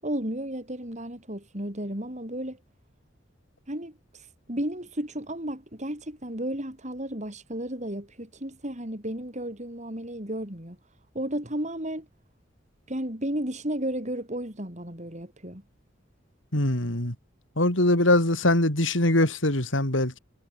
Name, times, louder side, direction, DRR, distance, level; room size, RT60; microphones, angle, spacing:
voice 1, 0.0-2.6 3.7-10.8 11.1-12.1 12.9-15.6, right 1 dB, 40° right, 6.6 m, -33 dB
voice 2, 16.5-17.1 17.6-20.2, left 1 dB, 85° left, 4.8 m, -22 dB
head